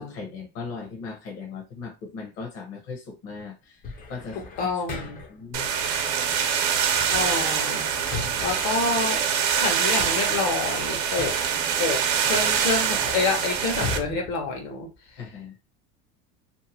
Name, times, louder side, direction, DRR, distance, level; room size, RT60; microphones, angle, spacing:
voice 1, 0.0-3.8 4.1-4.7 5.3-5.7 15.2-15.6, left 5 dB, 45° left, 0.8 m, -38 dB
sound 1, 3.8-5.5 6.9-9.4 9.7-11.7 12.2-15.3, left 4 dB, 30° left, 0.5 m, -38 dB
voice 2, 4.6-5.2 7.1-7.8 8.4-9.2 9.5-11.4 11.8-14.9, left 4 dB, 70° left, 1.1 m, -28 dB
sound 2, 5.5-14.0, right 8 dB, 65° right, 0.8 m, -25 dB
2.7 x 2.1 x 2.8 m
supercardioid pair, 140°, 32 cm